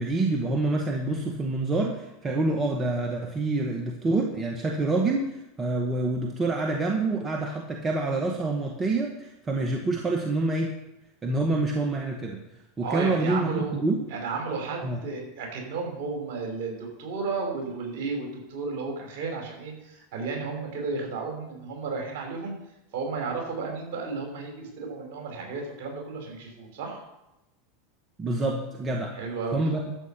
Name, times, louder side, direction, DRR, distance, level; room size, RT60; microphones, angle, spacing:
voice 1, 0.0-5.3 5.6-10.7 11.2-12.4 12.8-14.0 14.8-15.0 28.2-29.1 29.5-29.9, right 2 dB, 25° right, 1 dB, 1.8 m, -27 dB
voice 2, 12.8-13.8 14.1-22.5 22.9-27.0 29.1-29.6, right 4 dB, 60° right, 1 dB, 5.7 m, -33 dB
12.5 x 8.4 x 5.9 m, 0.91 s
hypercardioid pair, 95°, 0 cm